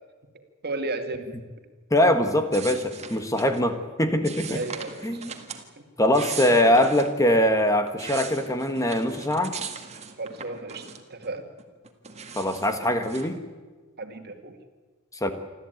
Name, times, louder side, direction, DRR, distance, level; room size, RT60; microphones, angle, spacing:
voice 1, 0.3-1.3 4.5-5.3 5.8-5.9 6.6-6.7 10.2-11.4 14.0-14.6, right 2 dB, 45° right, 6 dB, 2.2 m, -34 dB
voice 2, 1.9-4.6 5.0-5.3 6.0-9.5 12.4-13.4 15.2-15.3, left 1 dB, 15° left, 8 dB, 1.4 m, -22 dB
sound 1, 2.5-3.6 4.2-5.6 6.0-7.1 7.7-11.3 11.6-13.3, right 6 dB, 30° right, 2.0 m, -39 dB
27.0 x 13.5 x 9.3 m, 1.4 s
head